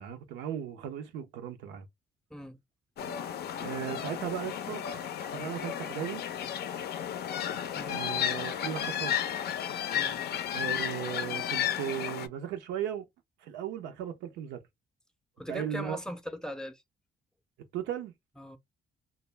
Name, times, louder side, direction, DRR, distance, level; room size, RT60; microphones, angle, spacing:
voice 1, 0.0-1.9 3.6-4.8 5.3-6.3 7.9-9.2 10.5-13.1 13.4-14.6 15.5-16.0 17.7-18.1, right 10 dB, 90° right, 0.6 m, -36 dB
sound 1, 3.0-12.3, left 9 dB, 60° left, 0.5 m, -33 dB
voice 2, 15.4-16.8 18.4-18.6, equal, 5° left, 0.5 m, -40 dB
2.2 x 2.0 x 3.2 m
cardioid pair, 80°, 19 cm